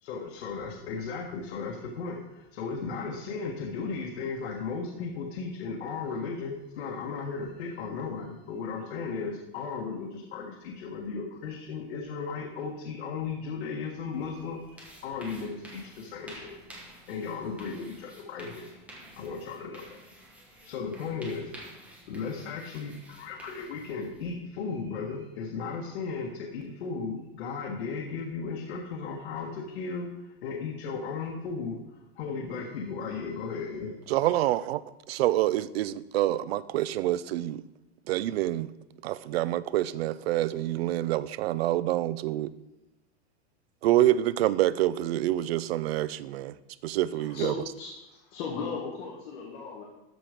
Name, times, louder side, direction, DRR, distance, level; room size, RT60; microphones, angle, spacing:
voice 1, 0.0-16.5 17.1-18.7 19.2-20.0 20.6-21.5 22.1-33.9, left 5 dB, 90° left, 1.5 m, -36 dB
sound 1, 14.1-24.3, right 1 dB, 5° right, 1.2 m, -50 dB
voice 2, 34.1-34.8 35.1-37.6 38.1-38.7 39.0-42.5 43.8-46.5 46.8-47.5, right 14 dB, 75° right, 0.6 m, -27 dB
voice 3, 47.1-47.9 48.2-49.9, left 5 dB, 40° left, 1.6 m, -36 dB
13.0 x 4.7 x 5.1 m
supercardioid pair, 170°, 31 cm